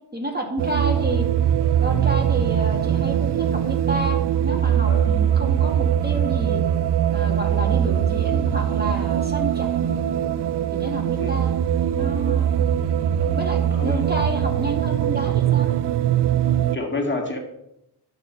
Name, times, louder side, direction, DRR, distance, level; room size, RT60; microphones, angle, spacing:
voice 1, 0.1-1.2 1.8-6.6 7.1-9.9 10.7-11.5 11.9-12.5 13.2-15.7, right 1 dB, 25° right, 2 dB, 2.4 m, -30 dB
sound 1, 0.6-16.8, right 10 dB, 80° right, 0.6 m, -21 dB
voice 2, 16.7-17.4, left 2 dB, 25° left, 1 dB, 2.2 m, -28 dB
11.0 x 6.9 x 5.5 m, 0.82 s
cardioid pair, 75°, 41 cm